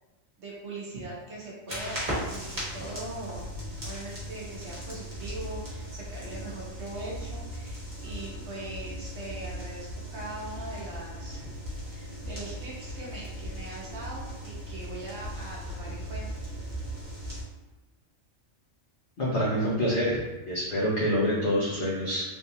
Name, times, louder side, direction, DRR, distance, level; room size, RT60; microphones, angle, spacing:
voice 1, 0.4-3.5 3.8-11.5 11.9-16.2, right 2 dB, 65° right, -5 dB, 1.0 m, -41 dB
sound 1, 1.7-17.4, equal, 35° right, 1.2 m, -38 dB
voice 2, 19.2-20.2 20.5-22.2, equal, 50° left, -7 dB, 0.8 m, -26 dB
3.5 x 2.7 x 2.7 m, 1.1 s
omnidirectional pair, 1.3 m